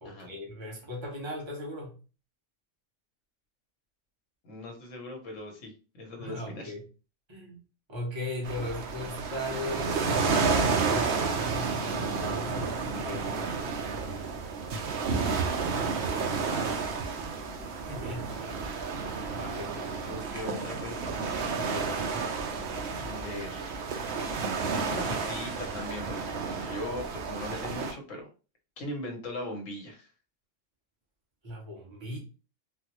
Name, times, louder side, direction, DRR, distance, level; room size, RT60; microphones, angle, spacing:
voice 1, 0.0-2.0 6.2-6.8 7.3-7.6 7.9-13.4 17.9-18.3 19.3-19.9 21.5-22.2 31.4-32.2, left 1 dB, 25° right, 1.0 m, -38 dB
voice 2, 4.4-6.7 16.5-16.8 18.3-18.5 19.4-21.4 23.0-23.8 24.9-26.2 26.6-28.3 28.8-30.1, left 1 dB, 85° left, 1.2 m, -40 dB
sound 1, 8.4-27.9, right 5 dB, 65° right, 0.8 m, -31 dB
3.8 x 2.0 x 2.9 m
omnidirectional pair, 1.3 m